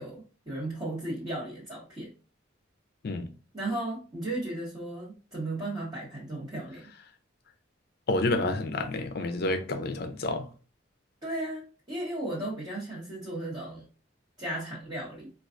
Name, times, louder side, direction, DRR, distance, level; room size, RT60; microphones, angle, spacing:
voice 1, 0.0-2.1 3.5-6.9 11.2-13.9 14.4-15.3, right 1 dB, 25° right, 1.0 m, -35 dB
voice 2, 8.1-10.5, left 2 dB, 55° left, 0.4 m, -29 dB
4.5 x 2.3 x 2.5 m
head